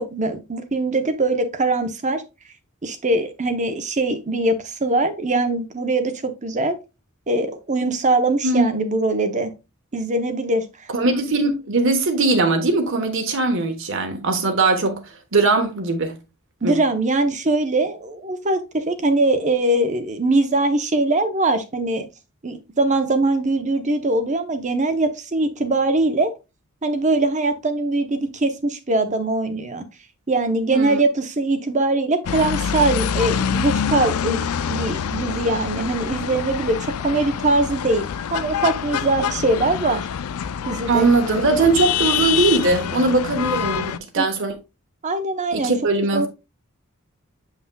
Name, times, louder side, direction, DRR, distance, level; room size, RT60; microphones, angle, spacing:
voice 1, 0.0-2.2 2.8-6.7 7.3-9.5 9.9-10.7 16.6-22.0 22.4-26.3 26.8-29.8 30.3-40.1 40.7-41.1 44.2-44.3 45.0-45.7 46.1-46.3, right 2 dB, 35° right, 0.8 m, -22 dB
voice 2, 10.9-15.0 15.3-16.2 16.6-16.8 30.7-31.0 40.9-44.5 45.5-46.3, right 3 dB, 60° right, 1.2 m, -20 dB
sound 1, 32.3-44.0, left 8 dB, 90° left, 0.4 m, -26 dB
8.1 x 5.7 x 2.2 m
head